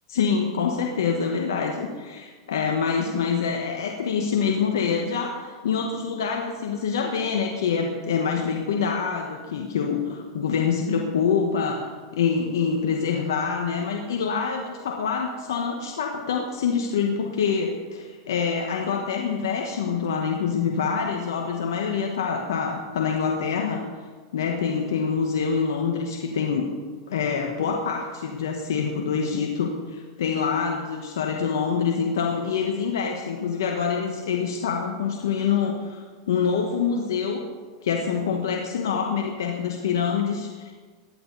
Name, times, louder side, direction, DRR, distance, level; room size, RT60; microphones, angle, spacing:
voice 1, 0.1-23.8 24.3-26.7 27.1-37.4 37.8-40.7, left 6 dB, 80° left, 2 dB, 1.5 m, -26 dB
18.5 x 11.5 x 4.2 m, 1.5 s
hypercardioid pair, 110°, 2 cm